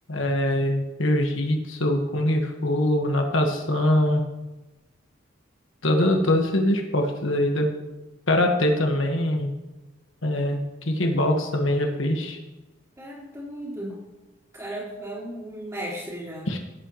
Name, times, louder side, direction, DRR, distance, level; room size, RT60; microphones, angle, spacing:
voice 1, 0.1-4.2 5.8-7.7 8.3-9.5 10.2-12.4 16.5-16.6, left 1 dB, 80° left, 3 dB, 1.5 m, -23 dB
voice 2, 13.0-14.0 14.5-16.5, right 1 dB, 15° right, -6 dB, 3.9 m, -35 dB
16.5 x 8.9 x 3.1 m, 1.1 s
head